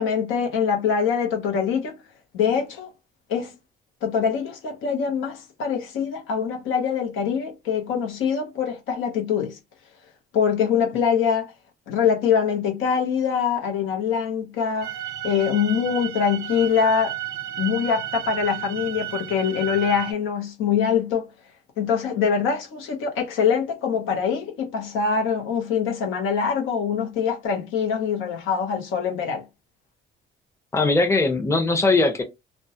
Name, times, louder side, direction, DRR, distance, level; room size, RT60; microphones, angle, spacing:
voice 1, 0.0-1.9 2.3-2.9 3.3-3.5 4.0-9.6 10.3-11.5 11.9-15.0 15.2-17.1 17.6-21.3 21.8-29.4, left 7 dB, 85° left, 0.8 m, -24 dB
sound 1, 14.8-20.1, right 12 dB, 85° right, 0.5 m, -33 dB
voice 2, 30.7-32.2, left 3 dB, 15° left, 0.6 m, -20 dB
2.2 x 2.1 x 2.7 m
cardioid pair, 90°, 20 cm